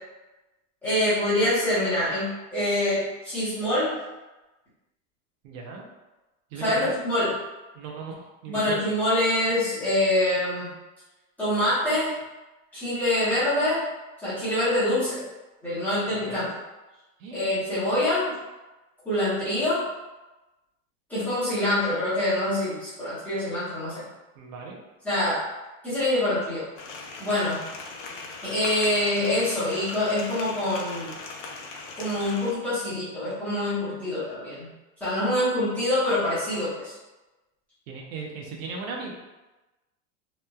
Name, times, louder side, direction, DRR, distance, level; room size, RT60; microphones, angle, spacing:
voice 1, 0.8-4.0 6.6-7.3 8.5-10.7 11.4-12.2 12.7-13.8 14.2-15.2 15.6-16.5 17.3-18.3 19.0-19.9 21.1-24.1 25.0-25.4 25.8-26.6 27.2-27.6 28.4-31.1 32.0-34.7 35.0-36.9, left 1 dB, 5° left, -15 dB, 0.6 m, -25 dB
voice 2, 5.4-5.8 6.5-6.9 7.7-8.8 16.1-16.5 17.2-17.6 24.4-24.8 37.9-39.1, right 4 dB, 70° right, 0 dB, 0.6 m, -37 dB
sound 1, 26.8-32.5, left 3 dB, 65° left, 0.5 m, -39 dB
3.0 x 2.1 x 2.2 m, 1.1 s
supercardioid pair, 180°, 40 cm